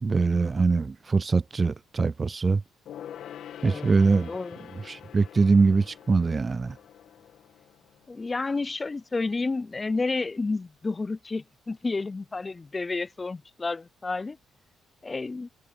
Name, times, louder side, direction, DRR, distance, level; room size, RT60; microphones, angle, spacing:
voice 1, 0.0-2.6 3.6-4.3 4.9-6.7, right 4 dB, 30° right, 0.3 m, -23 dB
Gong, 2.9-8.8 9.0-9.1, left 10 dB, 75° left, 1.7 m, -45 dB
voice 2, 4.3-4.6 8.1-14.4 15.0-15.5, left 3 dB, 25° left, 0.5 m, -30 dB
cardioid pair, 90°, 0 cm